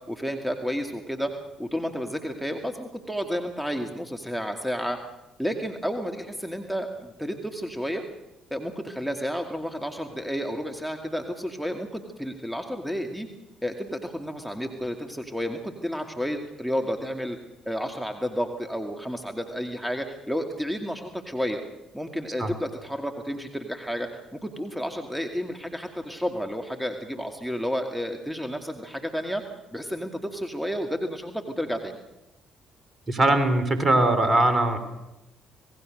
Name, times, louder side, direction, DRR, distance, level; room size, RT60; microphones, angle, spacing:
voice 1, 0.1-1.3 1.6-5.0 5.4-8.0 8.5-13.3 13.6-17.4 17.7-21.6 21.9-29.4 29.7-32.0, equal, 5° right, 5 dB, 2.3 m, -31 dB
voice 2, 33.1-34.8, right 2 dB, 35° right, 10 dB, 3.6 m, -21 dB
27.0 x 18.5 x 6.6 m, 0.93 s
hypercardioid pair, 50°, 0 cm